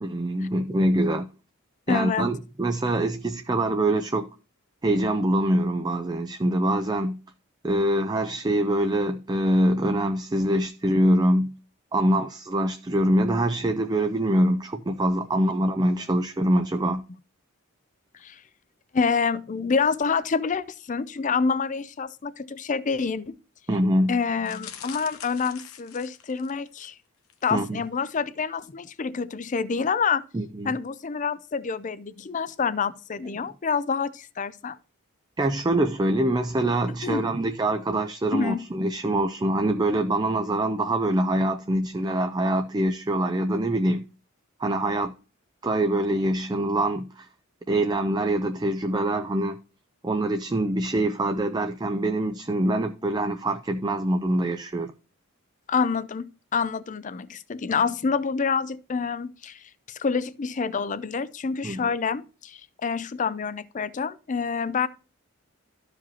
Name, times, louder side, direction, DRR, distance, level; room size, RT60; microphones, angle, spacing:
voice 1, 0.0-1.3 1.9-4.3 4.8-7.2 7.6-11.5 11.9-17.0 23.7-24.2 27.5-27.8 30.3-30.8 35.4-44.0 44.6-45.1 45.6-47.3 47.7-49.6 50.0-54.9 61.6-61.9, right 1 dB, 20° right, 0.4 m, -24 dB
voice 2, 1.9-2.3 11.9-12.0 18.2-18.4 18.9-23.4 24.1-26.9 27.4-30.2 30.6-34.8 37.0-37.3 38.3-38.6 55.7-64.9, left 5 dB, 35° left, 0.4 m, -27 dB
sound 1, 24.4-26.7 27.2-27.5 27.8-27.9, left 9 dB, 90° left, 0.9 m, -44 dB
13.5 x 4.9 x 2.8 m
head